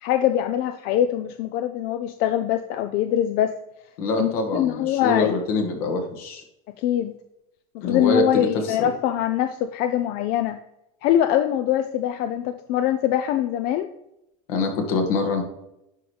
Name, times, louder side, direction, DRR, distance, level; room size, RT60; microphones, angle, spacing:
voice 1, 0.0-3.5 4.2-5.3 6.8-7.1 7.7-10.6 11.0-13.9, left 11 dB, 55° left, 8 dB, 0.6 m, -23 dB
voice 2, 4.0-6.4 7.8-8.9 14.5-15.4, left 3 dB, 75° left, 3 dB, 1.8 m, -25 dB
10.5 x 4.7 x 3.3 m, 0.83 s
supercardioid pair, 110°, 19 cm